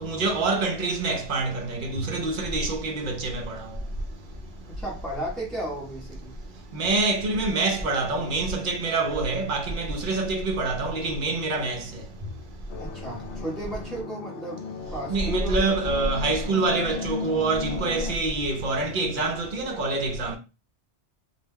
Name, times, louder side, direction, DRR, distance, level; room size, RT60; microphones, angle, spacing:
voice 1, 0.0-3.7 6.7-11.8 15.1-20.4, right 3 dB, 55° right, 0.6 m, -26 dB
voice 2, 4.8-6.3 12.8-14.7 14.9-15.9, right 1 dB, ahead, 0.6 m, -34 dB
sound 1, 12.7-18.2, left 5 dB, 75° left, 0.8 m, -36 dB
2.2 x 2.1 x 3.4 m
omnidirectional pair, 1.2 m